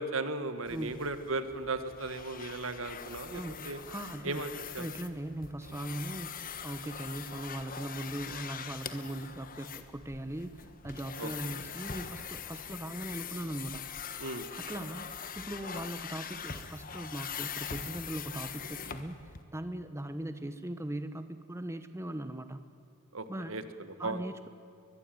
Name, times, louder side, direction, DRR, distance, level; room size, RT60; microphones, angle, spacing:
voice 1, 0.0-3.8 4.2-4.9 11.2-11.6 14.2-14.5 23.1-24.2, right 2 dB, 65° right, 10 dB, 1.6 m, -36 dB
sound 1, 0.6-19.4, left 7 dB, 40° left, 1.4 m, -43 dB
voice 2, 0.7-1.0 3.3-4.4 4.8-6.3 6.6-13.9 14.6-22.6 23.3-23.6 24.0-24.5, right 1 dB, 15° right, 10 dB, 0.9 m, -39 dB
22.0 x 22.0 x 9.2 m, 2.5 s
head